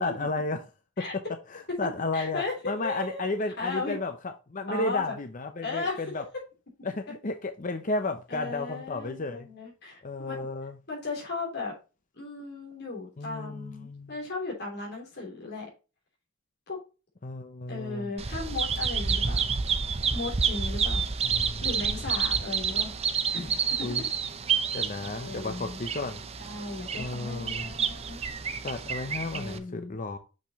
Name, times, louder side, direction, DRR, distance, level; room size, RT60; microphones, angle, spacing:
voice 1, 0.0-0.6 1.8-6.2 6.8-9.5 10.0-10.8 13.2-14.1 17.2-18.1 21.2-21.6 23.8-24.0 24.7-26.2 26.9-27.7 28.6-30.2, left 2 dB, 40° left, 0.7 m, -33 dB
voice 2, 2.1-4.0 4.7-5.1 5.6-6.0 8.3-10.3 10.9-11.7 12.1-15.7 16.7-16.8 17.7-19.5 20.1-21.0 21.6-22.9 23.3-23.9 24.4-24.6 25.0-25.8 26.4-28.2 29.3-29.9, left 3 dB, 55° left, 3.3 m, -36 dB
Bird vocalization bird call bird song, 18.2-29.6, right 6 dB, 30° right, 0.7 m, -29 dB
6.5 x 5.9 x 2.9 m
head